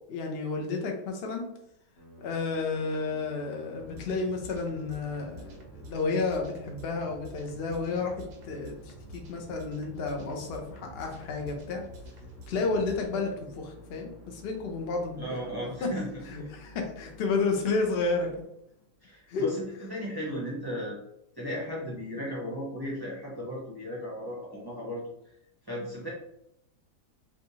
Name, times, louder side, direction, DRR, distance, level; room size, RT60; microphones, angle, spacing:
voice 1, 0.0-1.4 2.2-11.8 12.5-15.5 15.8-15.9 16.3-18.5 19.3-19.5, left 4 dB, 65° left, 2 dB, 0.6 m, -31 dB
Musical instrument, 2.0-19.1, equal, 35° left, 0.9 m, -52 dB
sound 1, 3.7-13.1, right 1 dB, 65° right, 0.7 m, -48 dB
voice 2, 15.2-16.2 19.0-21.0 21.4-25.0 25.6-26.1, equal, 25° right, -6 dB, 0.5 m, -35 dB
3.4 x 2.8 x 2.8 m, 0.78 s
omnidirectional pair, 1.8 m